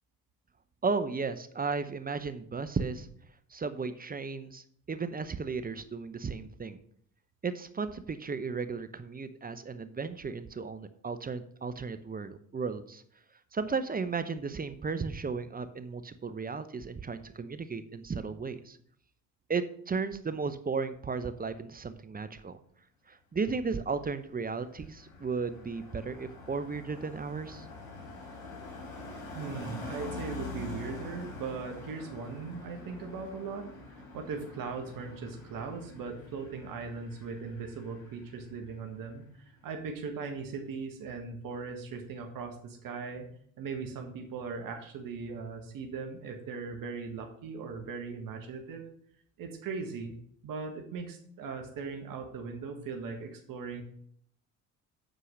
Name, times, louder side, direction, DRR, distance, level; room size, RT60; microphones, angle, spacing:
voice 1, 0.8-3.1 3.5-6.8 7.4-13.0 13.5-18.8 19.5-22.6 23.1-27.7, right 4 dB, 20° right, 11 dB, 0.8 m, -35 dB
Car passing by, 24.0-38.8 39.0-39.4, left 3 dB, 75° left, 3.8 m, -45 dB
voice 2, 29.3-43.3 43.6-48.8 49.4-50.1 50.4-53.8, right 5 dB, 60° right, 4 dB, 1.6 m, -39 dB
8.8 x 4.7 x 6.4 m, 0.64 s
hypercardioid pair, 65°, 39 cm